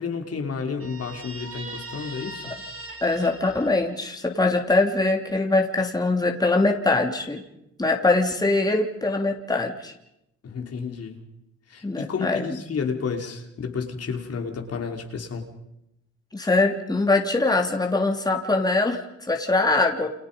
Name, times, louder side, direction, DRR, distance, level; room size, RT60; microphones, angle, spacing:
voice 1, 0.0-2.6 10.4-11.2 11.7-15.5, left 5 dB, 55° left, 3 dB, 3.4 m, -31 dB
Guitar, 0.8-4.4, right 2 dB, 45° right, 4.3 m, -40 dB
voice 2, 3.0-7.4 7.8-9.9 11.8-12.4 16.3-20.1, left 2 dB, 15° left, 1 dB, 3.2 m, -22 dB
29.5 x 28.0 x 5.4 m, 0.85 s
cardioid pair, 90°, 30 cm